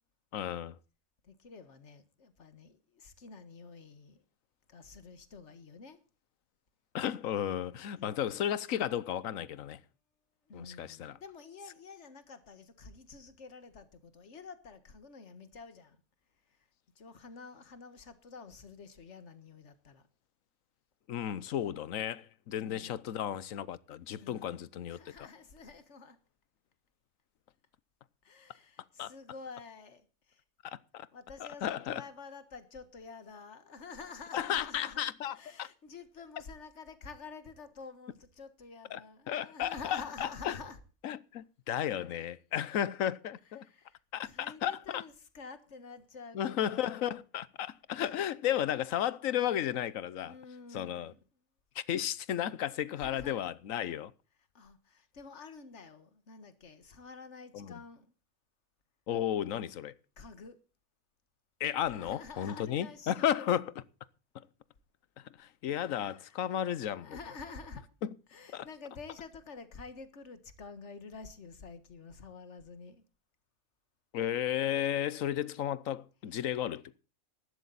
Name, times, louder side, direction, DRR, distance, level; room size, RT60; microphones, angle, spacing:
voice 1, 0.3-0.8 6.9-9.8 10.5-11.2 21.1-25.3 29.0-29.1 30.6-31.1 31.4-32.0 34.3-35.7 38.9-39.0 39.3-40.6 41.0-43.7 44.1-45.0 46.3-50.3 50.7-51.1 51.7-54.1 57.5-57.8 59.1-59.9 61.6-63.7 65.2-67.2 68.0-68.1 68.5-68.7 74.1-76.8, left 10 dB, 75° left, 1.2 m, -34 dB
voice 2, 1.2-4.2 4.7-6.0 8.0-8.5 10.5-16.0 16.9-20.1 22.5-23.0 24.2-26.2 28.2-30.4 31.1-35.0 35.3-40.8 43.6-47.2 50.2-51.2 52.9-53.4 54.5-58.1 60.2-60.6 61.8-63.6 65.8-66.3 66.9-67.9 68.3-73.0, left 4 dB, 60° left, 1.8 m, -49 dB
15.0 x 12.0 x 4.0 m
omnidirectional pair, 1.4 m